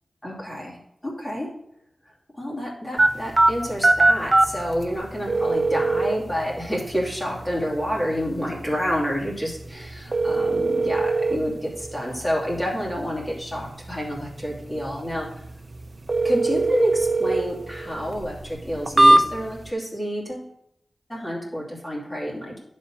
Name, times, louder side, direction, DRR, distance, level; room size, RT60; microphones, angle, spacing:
voice 1, 0.2-1.5 2.3-15.3 16.2-20.5 21.1-22.5, equal, 15° left, -4 dB, 2.8 m, -28 dB
sound 1, 3.0-19.7, right 2 dB, 35° right, 0.7 m, -24 dB
10.5 x 4.3 x 6.3 m, 0.75 s
wide cardioid pair, 100°, 0 cm